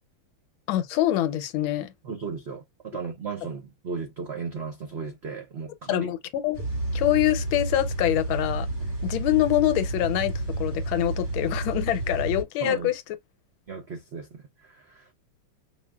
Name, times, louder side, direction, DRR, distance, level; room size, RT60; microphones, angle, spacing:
voice 1, 0.7-1.9 5.9-6.6 6.9-8.7 9.0-12.9, left 14 dB, 80° left, 1.4 m, -25 dB
voice 2, 2.0-6.1 12.6-12.9 13.7-15.1, right 5 dB, 85° right, 0.5 m, -35 dB
sound 1, 6.5-12.4, right 2 dB, 35° right, 1.9 m, -30 dB
5.8 x 2.4 x 2.3 m
omnidirectional pair, 2.2 m